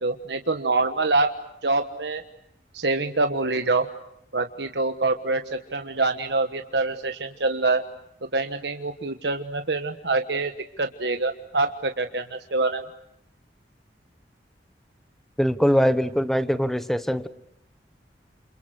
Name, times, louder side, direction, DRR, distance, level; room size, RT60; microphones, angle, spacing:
voice 1, 0.0-1.3 1.6-2.2 2.7-3.9 4.3-7.8 8.3-10.5 10.8-12.8, right 3 dB, 80° right, 7 dB, 1.4 m, -25 dB
voice 2, 15.4-17.3, equal, ahead, 13 dB, 1.2 m, -22 dB
29.5 x 29.0 x 6.5 m, 0.79 s
head